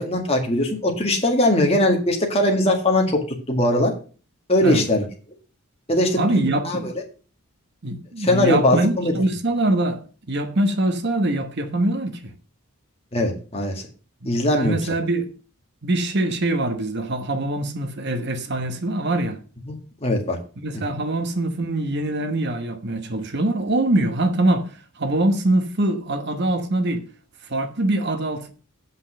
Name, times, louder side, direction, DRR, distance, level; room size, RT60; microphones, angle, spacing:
voice 1, 0.0-3.9 4.5-5.1 5.9-6.2 6.6-6.9 8.2-9.1 13.1-13.8 14.3-14.8 19.7-20.4, left 1 dB, 25° left, 1.8 m, -20 dB
voice 2, 6.1-6.9 7.8-10.0 10.3-12.3 14.2-15.3 15.8-19.4 20.6-27.0 27.5-28.5, right 1 dB, 50° right, 1.0 m, -23 dB
8.2 x 5.5 x 6.4 m
head